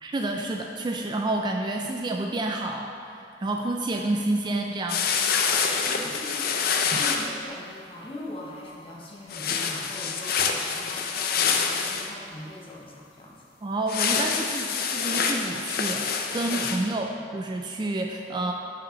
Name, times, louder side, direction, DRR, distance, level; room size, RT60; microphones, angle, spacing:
voice 1, 0.0-5.1 6.9-7.0 13.6-18.5, right 2 dB, 25° right, 2 dB, 0.3 m, -29 dB
sound 1, 4.9-7.3 9.3-12.1 13.9-16.9, left 6 dB, 55° left, 0.5 m, -26 dB
voice 2, 5.8-6.5 6.8-13.4 16.5-17.2, left 1 dB, 30° left, -4 dB, 0.8 m, -41 dB
6.0 x 5.0 x 5.6 m, 2.4 s
head